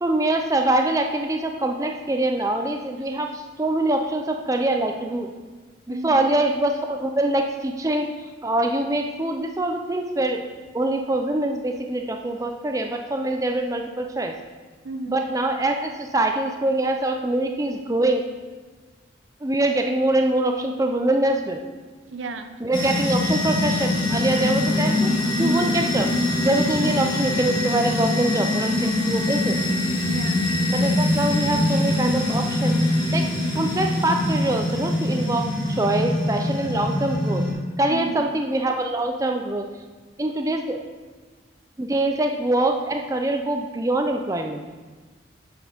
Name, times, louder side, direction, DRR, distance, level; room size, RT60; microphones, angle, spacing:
voice 1, 0.0-5.3 5.9-8.1 8.4-10.4 10.7-14.3 15.1-18.2 19.4-21.6 22.6-25.1 25.4-26.1 26.4-29.6 30.7-33.2 33.5-37.4 37.8-39.7 40.2-40.8 41.8-44.6, right 2 dB, 15° right, 4 dB, 0.4 m, -24 dB
voice 2, 5.9-6.3 14.8-15.2 22.1-22.6 30.0-30.5 37.9-38.3, right 2 dB, 80° right, 8 dB, 0.6 m, -33 dB
sound 1, 22.7-37.5, left 1 dB, 25° left, 1.5 m, -23 dB
8.3 x 4.3 x 5.2 m, 1.4 s
head